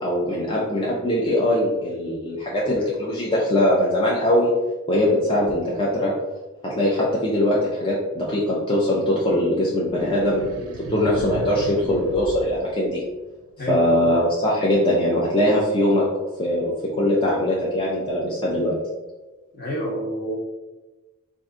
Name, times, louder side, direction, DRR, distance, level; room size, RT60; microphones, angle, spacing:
voice 1, 0.0-4.5 4.9-6.1 6.6-13.0 13.7-16.0 16.4-18.8, left 1 dB, 25° left, -5 dB, 0.6 m, -21 dB
sound 1, 10.0-13.4, right 2 dB, 90° right, 0.5 m, -36 dB
voice 2, 13.6-14.1 19.5-20.4, equal, 50° left, -4 dB, 1.3 m, -28 dB
4.6 x 2.6 x 3.7 m, 1.1 s
head